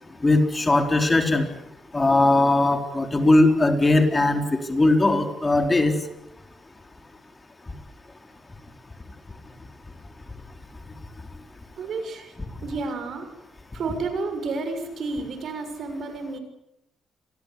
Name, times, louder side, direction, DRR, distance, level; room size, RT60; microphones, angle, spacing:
voice 1, 0.2-1.5 1.9-5.9, left 2 dB, 20° left, 5 dB, 4.0 m, -19 dB
voice 2, 11.8-12.3 12.6-13.3 13.7-16.4, right 3 dB, 60° right, 8 dB, 6.7 m, -31 dB
28.5 x 21.5 x 8.5 m, 0.86 s
cardioid pair, 90°, 0 cm